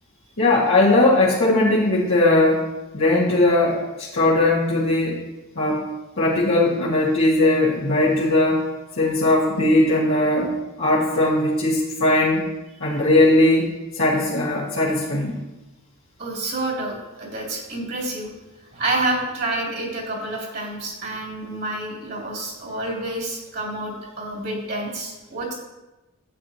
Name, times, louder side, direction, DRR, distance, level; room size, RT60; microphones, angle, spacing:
voice 1, 0.4-2.6 2.9-5.2 5.6-5.8 6.2-8.6 9.0-10.5 10.8-12.5 12.8-15.4, left 2 dB, 60° left, -8 dB, 1.8 m, -19 dB
voice 2, 16.2-18.3 18.7-25.5, right 2 dB, 45° right, -3 dB, 2.8 m, -28 dB
12.0 x 8.7 x 2.9 m, 1.0 s
head